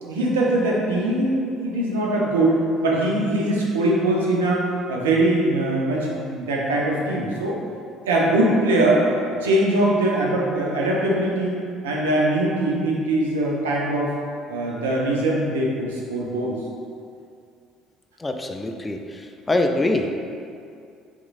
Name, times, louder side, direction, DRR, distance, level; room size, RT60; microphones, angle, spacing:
voice 1, 0.0-7.6 8.1-9.1 9.4-11.6 11.8-14.2 14.5-16.6, right 1 dB, 85° right, -3 dB, 0.5 m, -22 dB
voice 2, 18.2-19.2 19.5-20.1, left 2 dB, 20° left, 4 dB, 0.3 m, -23 dB
3.6 x 3.0 x 2.4 m, 2.4 s
hypercardioid pair, 60°, 0 cm